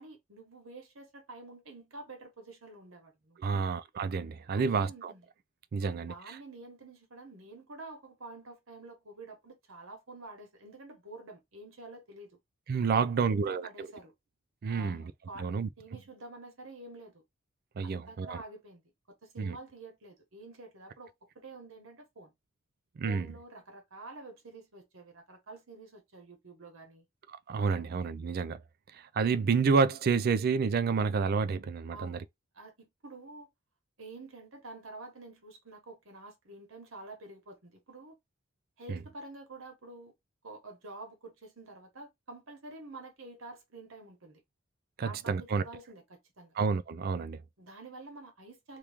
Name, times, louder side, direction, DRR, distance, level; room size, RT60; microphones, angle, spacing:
voice 1, 0.0-3.7 4.5-5.3 5.8-12.4 12.9-14.1 14.7-17.2 17.8-18.8 19.1-22.3 23.0-27.1 27.7-27.8 31.9-32.3 32.5-33.5 34.0-38.1 38.8-40.1 40.4-44.4 45.0-46.6 47.6-48.8, right 2 dB, 75° right, 1.3 m, -48 dB
voice 2, 3.4-5.1 5.7-6.4 12.7-13.9 14.6-15.1 15.4-15.7 17.8-18.4 19.4-19.6 23.0-23.3 27.5-28.6 28.9-32.2 38.9-39.0 45.0-45.6 46.6-47.4, right 5 dB, 50° right, 0.4 m, -29 dB
3.0 x 2.4 x 3.5 m
head